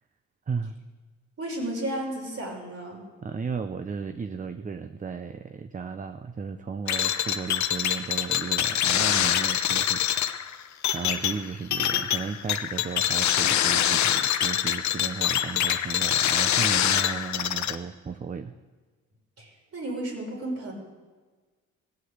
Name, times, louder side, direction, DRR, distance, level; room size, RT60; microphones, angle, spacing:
voice 1, 0.5-0.8 3.2-10.7 10.9-18.5, right 5 dB, 25° right, 9 dB, 0.7 m, -35 dB
voice 2, 1.4-3.0 19.4-20.7, right 1 dB, 50° right, -1 dB, 5.4 m, -33 dB
sound 1, 6.9-17.7, left 10 dB, 65° left, 0.9 m, -25 dB
17.0 x 8.1 x 8.0 m, 1.4 s
cardioid pair, 90°, 30 cm